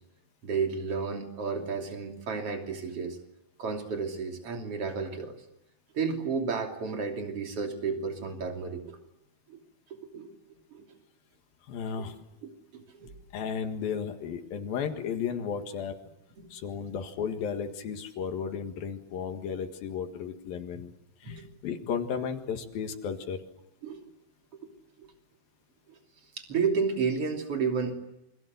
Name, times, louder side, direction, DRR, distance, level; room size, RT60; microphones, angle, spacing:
voice 1, 0.4-3.2 3.6-5.4 5.9-9.0 9.5-9.6 9.9-10.3 10.7-10.8 12.4-13.1 16.4-16.5 21.2-21.5 23.8-24.0 25.0-25.1 25.9-26.0 26.4-27.9, right 5 dB, 45° right, 3 dB, 3.8 m, -32 dB
voice 2, 11.7-12.2 13.3-16.0 16.5-20.9 21.2-23.4, left 7 dB, 85° left, 5 dB, 3.6 m, -34 dB
28.5 x 25.0 x 8.0 m, 0.86 s
omnidirectional pair, 4.0 m